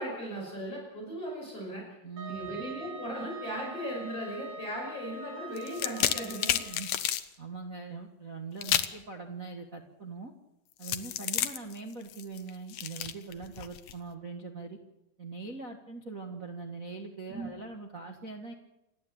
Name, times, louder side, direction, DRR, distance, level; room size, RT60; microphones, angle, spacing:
voice 1, 0.0-1.8 2.3-6.6 17.3-17.5, equal, 40° left, -2 dB, 6.9 m, -37 dB
voice 2, 2.0-2.5 6.6-6.9 7.4-10.3 10.8-14.8 15.2-18.5, right 4 dB, 40° right, 2 dB, 1.2 m, -42 dB
Wind instrument woodwind instrument, 2.2-6.9, right 3 dB, 75° right, 5.4 m, -44 dB
sound 1, 5.6-7.3 8.6-9.0 10.8-13.9, left 11 dB, 70° left, 1.6 m, -31 dB
28.5 x 13.0 x 8.9 m, 0.89 s
omnidirectional pair, 4.4 m